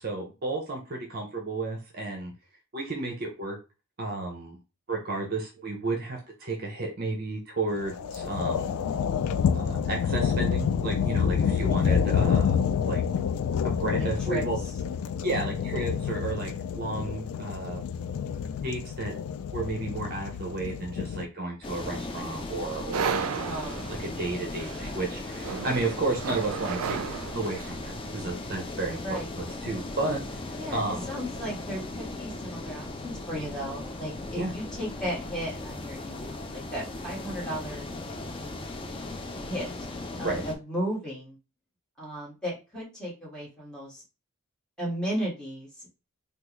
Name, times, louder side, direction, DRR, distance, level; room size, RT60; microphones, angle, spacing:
voice 1, 0.0-2.3 2.7-3.6 4.0-4.6 4.9-8.7 9.5-12.6 12.8-13.0 13.6-14.6 15.2-17.8 18.6-19.1 19.5-23.7 24.0-27.0 27.3-31.1 34.4-34.5 40.2-40.4, right 2 dB, 45° right, 2 dB, 0.6 m, -32 dB
sound 1, 7.7-21.2, left 7 dB, 90° left, 0.3 m, -28 dB
voice 2, 14.0-14.4 23.3-23.9 29.0-29.3 30.6-37.9 39.4-39.7 40.2-41.4 42.0-44.0 44.8-45.9, equal, 5° left, -7 dB, 1.6 m, -35 dB
sound 2, 21.6-40.6, left 2 dB, 25° left, 0.4 m, -37 dB
sound 3, 22.9-27.9, right 6 dB, 80° right, 0.3 m, -34 dB
3.5 x 2.3 x 3.0 m, 0.30 s
head